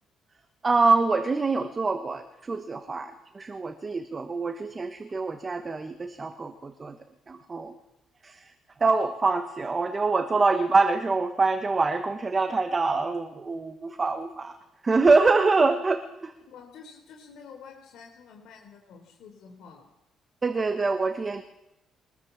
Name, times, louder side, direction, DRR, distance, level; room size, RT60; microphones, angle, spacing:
voice 1, 0.6-7.0 7.3-7.7 8.2-8.5 8.8-14.6 14.8-16.3 20.4-21.4, right 3 dB, 20° right, 8 dB, 1.3 m, -25 dB
voice 2, 16.5-19.9, left 6 dB, 70° left, 2 dB, 4.1 m, -48 dB
23.5 x 21.0 x 7.4 m, 0.88 s
cardioid pair, 180°, 0 cm